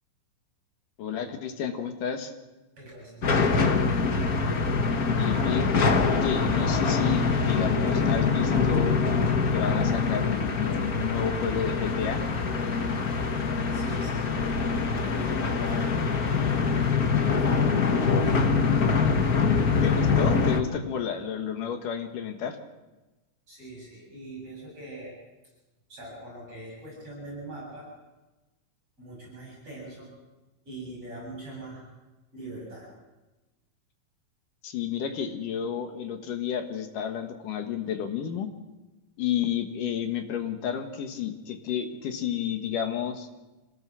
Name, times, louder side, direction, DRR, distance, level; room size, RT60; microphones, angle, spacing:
voice 1, 1.0-2.3 5.0-5.7 6.1-9.0 9.5-12.2 19.8-22.6 34.6-38.5 39.2-43.3, left 8 dB, 75° left, 6 dB, 3.1 m, -31 dB
voice 2, 2.8-4.0 13.7-16.0 17.3-17.8 18.2-18.5 23.5-25.1 25.9-27.9 29.0-30.1 30.7-31.8 32.3-32.9, right 1 dB, 40° right, -4 dB, 9.1 m, -42 dB
sound 1, 3.2-20.6, left 4 dB, 55° left, 1.0 m, -24 dB
26.5 x 18.0 x 6.3 m, 1.1 s
omnidirectional pair, 3.8 m